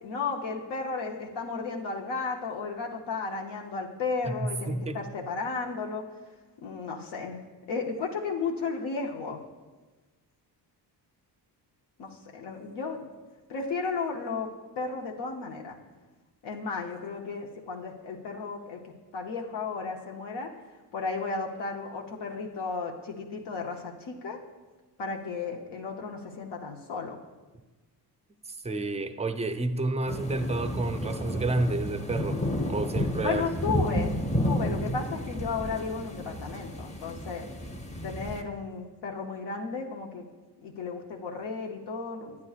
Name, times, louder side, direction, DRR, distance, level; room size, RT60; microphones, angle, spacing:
voice 1, 0.0-6.0 6.6-7.4 7.7-9.4 12.0-13.1 13.5-14.5 14.8-15.8 16.4-18.8 19.1-20.5 20.9-24.4 25.0-27.2 33.2-34.1 34.4-37.5 38.0-40.2 40.6-42.4, left 4 dB, 85° left, 0 dB, 0.9 m, -34 dB
voice 2, 4.2-5.0 28.6-33.5, right 2 dB, 15° right, 9 dB, 0.4 m, -30 dB
sound 1, 30.1-38.4, equal, 15° left, 0.7 m, -31 dB
9.5 x 9.4 x 2.4 m, 1.2 s
cardioid pair, 90°, 40 cm